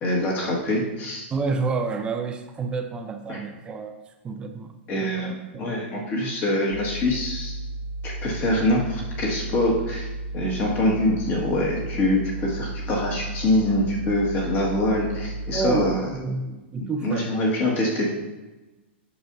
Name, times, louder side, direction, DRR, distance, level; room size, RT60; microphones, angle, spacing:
voice 1, 0.0-1.3 3.3-3.4 4.9-7.5 8.0-10.1 10.3-16.1 16.8-18.1, left 1 dB, 25° left, -2 dB, 1.7 m, -24 dB
voice 2, 1.3-4.0 4.2-5.8 15.5-17.4, right 4 dB, 15° right, 6 dB, 0.5 m, -29 dB
sound 1, 6.7-15.9, right 2 dB, 65° left, 0.6 m, -33 dB
8.7 x 6.7 x 2.6 m, 1.1 s
hypercardioid pair, 155°, 6 cm